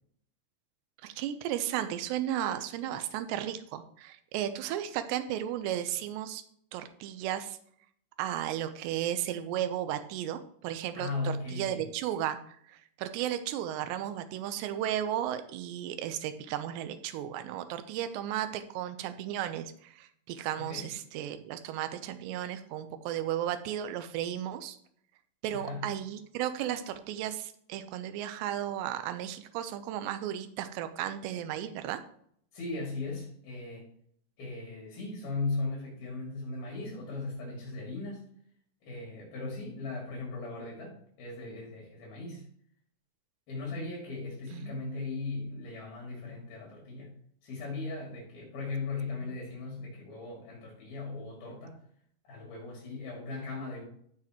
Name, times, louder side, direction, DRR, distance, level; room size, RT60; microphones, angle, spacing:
voice 1, 1.0-6.4 6.7-7.6 8.2-24.8 25.4-32.0 44.5-45.1 49.2-49.3, right 11 dB, 80° right, 9 dB, 2.8 m, -34 dB
voice 2, 10.9-11.9 20.6-20.9 25.5-25.9 32.5-33.9 34.4-38.3 38.8-42.5 43.5-47.1 47.4-51.8 52.2-53.8, left 3 dB, 55° left, -2 dB, 4.3 m, -38 dB
13.0 x 7.4 x 3.0 m, 0.64 s
omnidirectional pair, 5.4 m